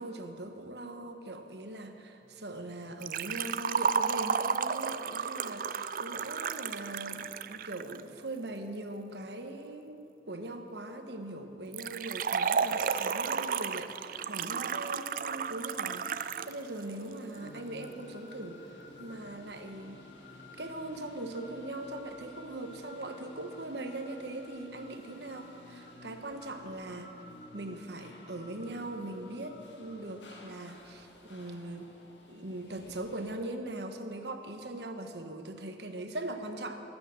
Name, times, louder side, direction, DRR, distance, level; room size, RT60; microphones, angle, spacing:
voice 1, 0.0-18.6 19.0-20.0 20.6-27.1 27.5-31.9 32.3-36.8, right 1 dB, 70° right, 6 dB, 1.2 m, -41 dB
Liquid, 3.0-8.0 11.7-16.5 16.8-16.9 17.8-17.9, right 6 dB, 50° right, 0.4 m, -32 dB
sound 1, 15.2-33.4, left 1 dB, 90° left, 1.9 m, -56 dB
sound 2, 17.3-30.6, left 2 dB, 50° left, 1.1 m, -52 dB
19.0 x 8.7 x 7.4 m, 3.0 s
head